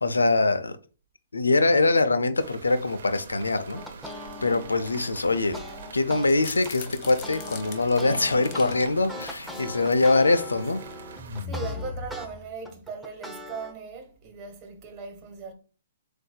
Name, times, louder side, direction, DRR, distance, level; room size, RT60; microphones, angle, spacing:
voice 1, 0.0-0.8 1.3-3.8 4.4-5.6 5.9-10.8, left 3 dB, 90° left, 0.5 m, -23 dB
sound 1, 2.4-11.5, right 5 dB, 60° right, 0.8 m, -44 dB
sound 2, 3.7-6.3 6.6-12.3 12.6-13.7, left 1 dB, ahead, 0.7 m, -40 dB
sound 3, 6.1-8.8 9.2-10.1 10.5-10.8 11.2-12.8, left 5 dB, 35° left, 0.9 m, -39 dB
voice 2, 11.4-15.5, right 5 dB, 30° right, 1.3 m, -39 dB
7.7 x 2.6 x 2.3 m
hypercardioid pair, 130°, 0 cm